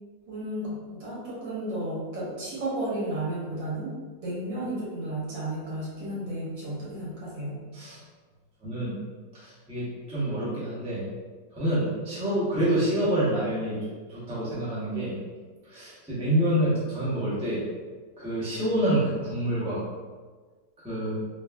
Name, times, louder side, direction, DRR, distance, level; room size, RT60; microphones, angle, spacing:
voice 1, 0.3-3.9 4.2-7.6, right 1 dB, 85° right, -7 dB, 1.7 m, -33 dB
voice 2, 8.6-8.9 9.3-11.0 11.5-13.8 14.1-15.1 15.6-17.6 18.2-19.8 20.8-21.2, right 1 dB, 10° right, -9 dB, 0.3 m, -27 dB
3.7 x 2.4 x 2.2 m, 1.4 s
omnidirectional pair, 1.9 m